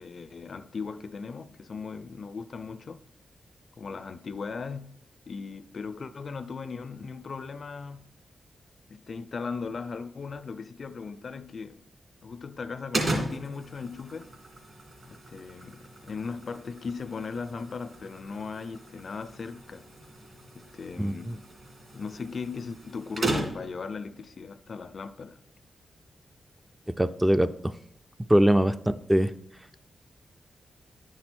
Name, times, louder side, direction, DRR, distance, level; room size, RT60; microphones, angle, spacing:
voice 1, 0.0-3.0 3.8-4.9 5.3-8.1 8.9-11.9 12.2-14.3 15.1-19.9 20.6-21.4 21.9-25.4 28.6-28.8, left 5 dB, 55° left, 0.4 m, -38 dB
sound 1, 12.9-23.8, right 2 dB, 45° right, 2.4 m, -36 dB
voice 2, 21.0-21.3 27.0-27.7 28.3-28.7 29.1-29.3, equal, 10° right, 0.4 m, -22 dB
10.5 x 6.1 x 4.3 m
wide cardioid pair, 95°, 0 cm